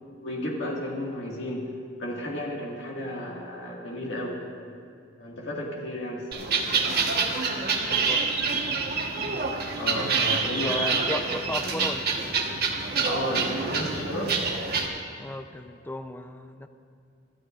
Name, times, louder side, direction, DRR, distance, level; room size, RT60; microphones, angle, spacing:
voice 1, 0.2-1.7 2.0-4.4 5.2-6.6 9.8-10.9 13.0-14.4, left 1 dB, 65° left, -3 dB, 2.0 m, -33 dB
sound 1, 6.3-14.9, right 4 dB, 50° right, 1.4 m, -27 dB
voice 2, 7.9-8.3 10.6-12.1 15.2-16.7, left 1 dB, 10° left, 7 dB, 0.6 m, -35 dB
26.0 x 13.0 x 2.5 m, 2.3 s
head